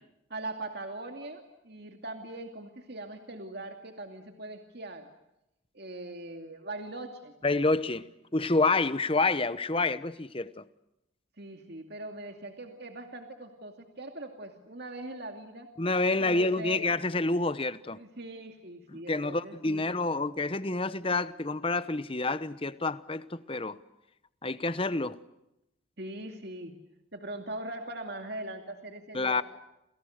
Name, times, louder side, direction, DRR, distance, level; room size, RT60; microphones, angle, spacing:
voice 1, 0.3-5.1 5.7-7.3 11.4-15.7 16.2-16.8 17.9-19.9 26.0-26.7 27.1-29.4, right 2 dB, 50° right, 2.5 m, -41 dB
voice 2, 7.4-8.1 8.3-10.6 15.8-18.0 18.9-23.8 24.4-25.2 29.1-29.4, left 3 dB, 25° left, 1.0 m, -28 dB
29.0 x 28.5 x 6.6 m
head